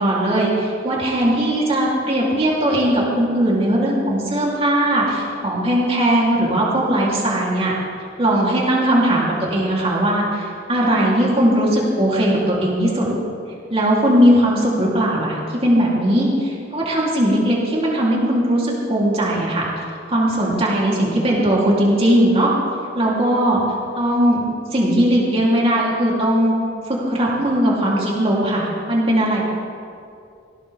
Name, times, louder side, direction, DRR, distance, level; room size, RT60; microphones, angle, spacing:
voice 1, 0.0-7.7 8.2-13.1 13.7-15.4 15.6-19.6 20.1-22.5 23.0-23.6 23.9-24.4 24.7-26.5 26.9-29.4, right 1 dB, 30° right, -5 dB, 3.4 m, -18 dB
18.5 x 16.5 x 3.6 m, 2.5 s
head